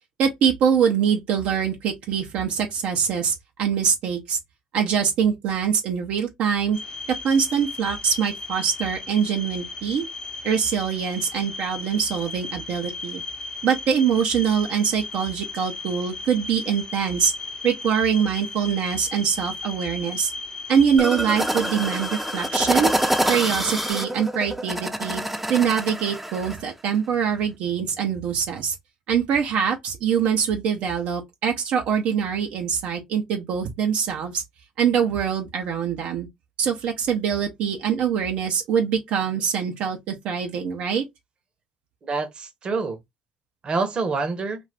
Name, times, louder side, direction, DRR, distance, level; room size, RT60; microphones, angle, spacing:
voice 1, 0.2-4.4 4.7-6.8 7.2-10.0 10.4-13.2 13.6-17.3 17.6-20.3 20.7-22.9 23.3-25.2 25.5-28.7 29.1-34.4 34.8-36.3 36.6-41.0, right 7 dB, 70° right, 0.6 m, -23 dB
sound 1, 6.7-23.9, left 3 dB, 30° left, 0.8 m, -36 dB
sound 2, 21.0-26.6, right 1 dB, 5° right, 0.6 m, -26 dB
voice 2, 42.0-43.0 43.6-44.6, right 4 dB, 40° right, 0.9 m, -27 dB
2.5 x 2.4 x 3.2 m
hypercardioid pair, 60°, 2 cm